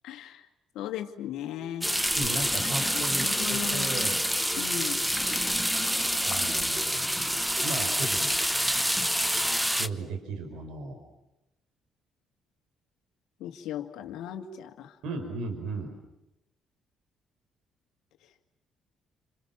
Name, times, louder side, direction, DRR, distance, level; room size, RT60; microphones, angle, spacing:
voice 1, 0.0-0.4 0.7-1.9 2.6-4.1 4.6-5.0 13.4-15.0, left 10 dB, 75° left, 5 dB, 2.1 m, -37 dB
sound 1, 1.8-9.9, equal, ahead, 1.1 m, -27 dB
voice 2, 2.1-4.2 6.2-8.3 9.8-11.0 15.0-15.9, right 3 dB, 75° right, 5 dB, 5.0 m, -36 dB
28.5 x 27.0 x 7.3 m, 0.91 s
hypercardioid pair, 60°, 0 cm